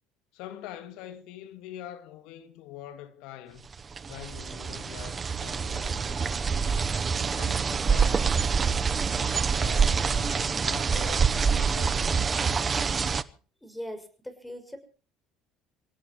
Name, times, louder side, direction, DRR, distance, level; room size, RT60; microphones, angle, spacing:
voice 1, 0.3-3.7 4.1-7.0 7.3-12.4, left 11 dB, 65° left, 2.2 m, -45 dB
sound 1, 3.7-13.2, right 5 dB, 30° right, 1.0 m, -26 dB
voice 2, 13.6-14.8, equal, 5° left, 6.1 m, -40 dB
26.5 x 17.5 x 3.0 m
hypercardioid pair, 65°, 0 cm